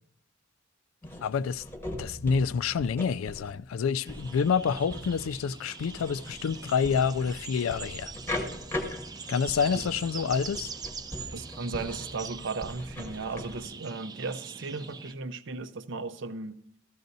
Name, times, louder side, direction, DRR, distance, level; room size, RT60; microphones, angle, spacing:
sound 1, 1.0-13.7, left 1 dB, 10° left, 0.9 m, -40 dB
voice 1, 1.2-1.6 2.0-8.1 9.3-10.7, left 6 dB, 75° left, 0.3 m, -28 dB
sound 2, 4.0-15.1, right 5 dB, 20° right, 0.3 m, -43 dB
voice 2, 11.3-16.6, right 3 dB, 60° right, 0.6 m, -36 dB
14.0 x 14.0 x 2.7 m
head